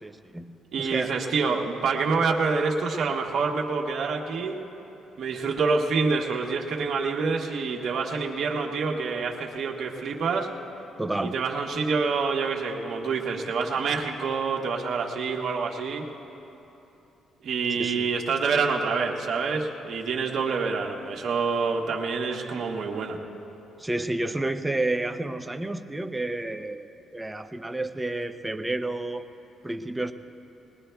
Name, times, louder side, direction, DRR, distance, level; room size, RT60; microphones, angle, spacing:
voice 1, 0.0-1.1 11.0-11.3 17.8-18.1 23.8-26.8 27.1-29.2 29.6-30.1, right 2 dB, 10° right, 8 dB, 0.7 m, -30 dB
voice 2, 0.7-4.6 5.2-10.5 11.2-16.1 17.4-23.2, right 4 dB, 65° right, 0 dB, 1.2 m, -27 dB
21.0 x 20.0 x 2.3 m, 3.0 s
cardioid pair, 90°, 0 cm